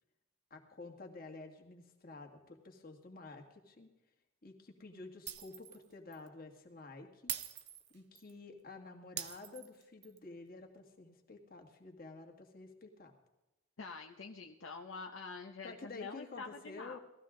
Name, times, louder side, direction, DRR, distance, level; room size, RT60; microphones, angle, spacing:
voice 1, 0.5-3.9 4.4-7.3 7.9-13.1 15.6-17.0, left 3 dB, 45° left, 3 dB, 2.0 m, -51 dB
Shatter, 5.3-5.8 6.1-6.3 7.3-8.3 9.2-10.2, right 11 dB, 55° right, 0.9 m, -43 dB
voice 2, 13.8-17.0, left 4 dB, 75° left, 3 dB, 0.9 m, -46 dB
18.5 x 14.0 x 3.8 m, 0.96 s
head